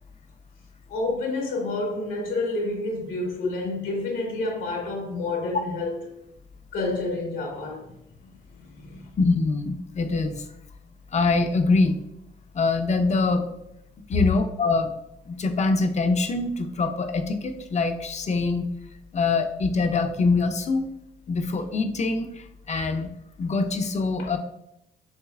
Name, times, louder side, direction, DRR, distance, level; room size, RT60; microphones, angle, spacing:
voice 1, 0.9-6.0 6.7-7.9 8.5-9.1 14.1-14.2 24.2-24.3, left 2 dB, 85° left, 1.6 m, -29 dB
voice 2, 9.2-10.5 11.1-12.0 12.5-13.5 14.1-14.9 15.2-18.7 19.1-20.9 21.3-23.1 23.4-24.4, left 3 dB, 35° left, 0.6 m, -24 dB
6.4 x 3.1 x 2.4 m
cardioid pair, 90°, 20 cm